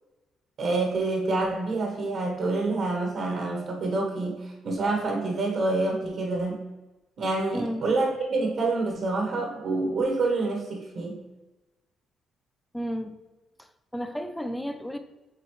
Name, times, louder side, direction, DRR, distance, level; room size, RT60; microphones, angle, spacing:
voice 1, 0.6-6.6 7.2-11.2, right 3 dB, 65° right, 1 dB, 1.2 m, -27 dB
voice 2, 7.5-7.8 12.7-13.2 13.6-13.7 13.9-15.0, equal, 5° left, 7 dB, 0.6 m, -32 dB
8.2 x 3.7 x 3.2 m, 1.1 s
cardioid pair, 90°, 0 cm